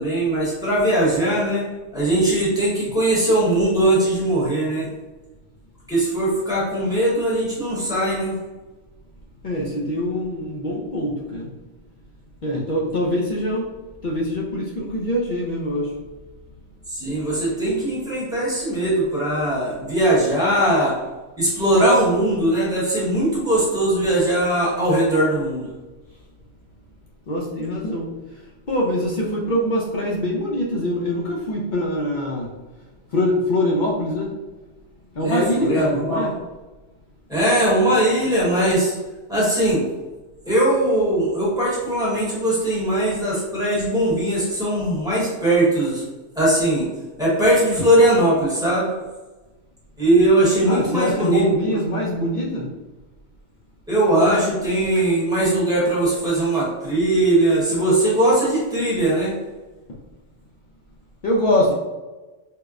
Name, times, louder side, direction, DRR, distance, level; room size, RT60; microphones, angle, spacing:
voice 1, 0.0-4.9 5.9-8.4 16.9-21.0 21.4-25.7 35.2-36.2 37.3-38.9 39.3-39.9 40.4-46.0 46.3-46.9 47.2-48.9 50.0-51.4 53.9-59.4, right 1 dB, 5° right, -8 dB, 0.9 m, -20 dB
voice 2, 9.4-11.5 12.4-13.7 14.0-15.9 27.3-28.1 28.7-32.5 33.1-34.3 35.2-36.4 50.7-52.7 61.2-61.7, left 1 dB, 55° left, -3 dB, 0.5 m, -23 dB
4.4 x 2.1 x 2.4 m, 1.2 s
omnidirectional pair, 1.2 m